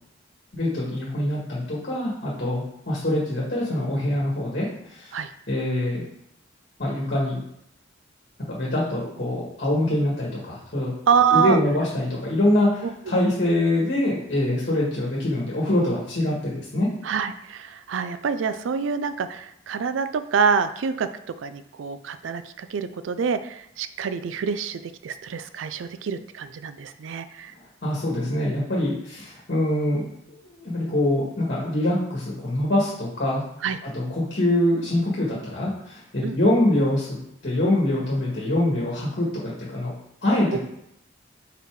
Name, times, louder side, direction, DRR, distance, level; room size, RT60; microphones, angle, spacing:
voice 1, 0.5-5.1 5.5-6.1 6.8-7.4 8.5-10.9 11.3-16.9 27.8-30.0 30.6-33.4 33.9-37.2 37.4-39.9 40.2-40.6, left 1 dB, 55° left, -5 dB, 1.6 m, -24 dB
voice 2, 11.1-11.6 12.8-12.9 17.0-21.1 21.4-27.5 33.6-33.8 36.2-36.4 40.5-40.6, right 6 dB, 80° right, 11 dB, 0.4 m, -26 dB
5.4 x 4.1 x 4.7 m, 0.78 s
head